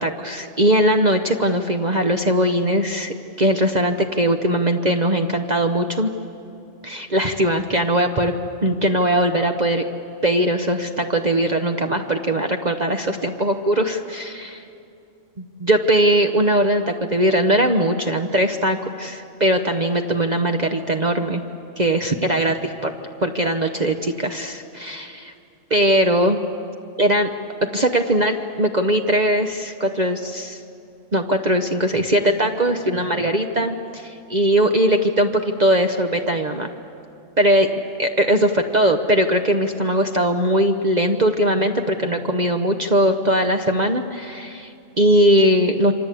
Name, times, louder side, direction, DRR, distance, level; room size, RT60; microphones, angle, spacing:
voice 1, 0.0-6.1 6.8-8.3 8.6-9.8 10.2-14.6 15.4-21.4 21.8-22.9 23.2-25.2 25.7-26.4 27.0-27.3 27.7-30.6 31.1-36.7 37.4-37.7 38.0-45.9, right 1 dB, 35° right, 5 dB, 1.0 m, -20 dB
28.0 x 25.0 x 8.4 m, 2.6 s
omnidirectional pair, 1.3 m